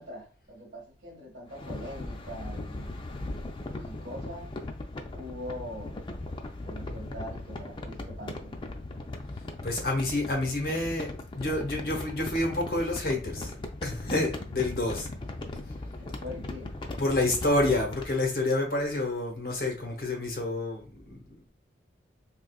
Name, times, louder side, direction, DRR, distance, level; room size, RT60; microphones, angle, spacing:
voice 1, 0.0-2.9 3.7-4.6 5.1-6.1 6.6-8.6 15.2-15.3 15.9-16.7, left 1 dB, 60° right, 1.4 m, -42 dB
sound 1, 1.5-18.2, left 2 dB, 25° left, 0.4 m, -38 dB
voice 2, 9.6-13.5 13.8-15.1 17.0-21.4, left 2 dB, 50° left, 1.0 m, -28 dB
3.7 x 2.7 x 2.3 m
head